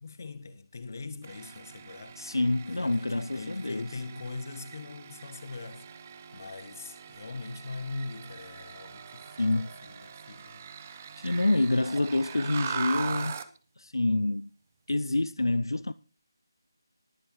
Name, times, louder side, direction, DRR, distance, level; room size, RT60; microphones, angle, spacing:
voice 1, 0.0-2.2 2.7-5.9 6.3-10.6, left 3 dB, 45° left, 1.5 m, -41 dB
sound 1, 1.2-13.6, right 7 dB, 25° right, 0.9 m, -42 dB
voice 2, 2.2-3.9 9.4-9.7 11.2-13.4 13.8-14.5 14.9-15.9, left 2 dB, 75° left, 0.5 m, -27 dB
19.5 x 9.7 x 3.2 m
figure-of-eight pair, 155°, 2 cm